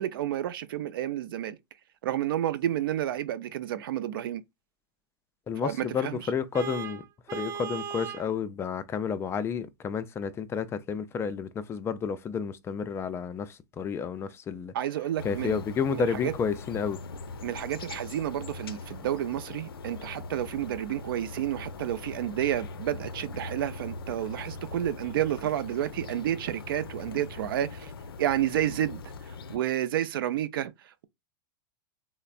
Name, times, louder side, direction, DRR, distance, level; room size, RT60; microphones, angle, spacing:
voice 1, 0.0-1.6 2.0-4.4 5.6-6.2 14.7-15.6 16.2-16.3 17.4-27.9 28.2-29.0 29.5-30.7, right 11 dB, 70° right, 0.4 m, -30 dB
voice 2, 5.5-7.0 7.3-14.7 15.2-17.0, left 6 dB, 20° left, 0.3 m, -31 dB
Vehicle horn car horn honking, 6.5-8.3, right 7 dB, 25° right, 0.6 m, -37 dB
sound 1, 15.2-29.6, left 3 dB, 90° left, 0.4 m, -41 dB
3.2 x 2.0 x 2.4 m
hypercardioid pair, 110°, 12 cm